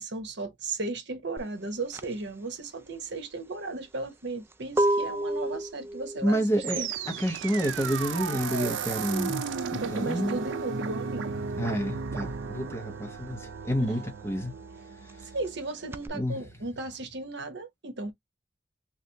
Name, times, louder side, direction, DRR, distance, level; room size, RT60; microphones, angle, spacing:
voice 1, 0.0-6.9 9.7-11.3 15.3-18.1, right 3 dB, 65° right, 1.0 m, -35 dB
sound 1, 1.4-11.6 11.9-16.1, right 1 dB, 15° right, 0.3 m, -33 dB
voice 2, 6.2-6.9 7.2-9.4 9.7-10.4 11.6-14.5 16.1-16.4, equal, 15° left, 1.0 m, -29 dB
sound 2, 6.6-15.8, right 6 dB, 90° right, 0.5 m, -35 dB
3.3 x 2.5 x 2.7 m
head